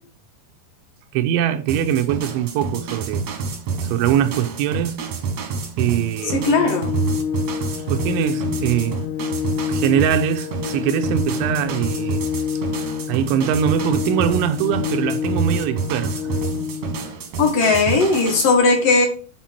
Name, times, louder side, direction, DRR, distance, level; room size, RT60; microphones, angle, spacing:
voice 1, 1.1-3.3 3.8-5.0 5.8-6.4 7.9-9.0 9.7-12.2 13.1-16.4, right 10 dB, 90° right, 3.2 m, -22 dB
sound 1, 1.7-18.5, right 5 dB, 60° right, 1.8 m, -28 dB
Organ, 6.2-17.2, left 8 dB, 85° left, 3.0 m, -28 dB
voice 2, 6.3-6.9 17.4-19.1, left 3 dB, 55° left, 3.0 m, -17 dB
9.0 x 4.6 x 6.0 m
omnidirectional pair, 5.2 m